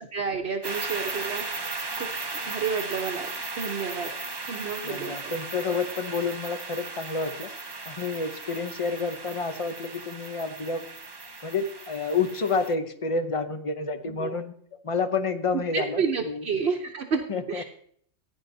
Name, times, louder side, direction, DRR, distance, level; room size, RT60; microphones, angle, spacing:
voice 1, 0.1-2.1 2.4-3.3 3.6-4.1 4.5-5.3 14.1-14.4 15.5-17.2 17.5-17.6, right 5 dB, 55° right, 1 dB, 1.0 m, -30 dB
sound 1, 0.6-12.7, right 3 dB, 30° right, 0.5 m, -36 dB
voice 2, 4.8-7.5 7.9-10.9 11.4-14.5 14.8-16.4 17.3-17.6, left 4 dB, 30° left, 9 dB, 0.7 m, -29 dB
15.5 x 9.7 x 2.7 m, 0.63 s
omnidirectional pair, 1.4 m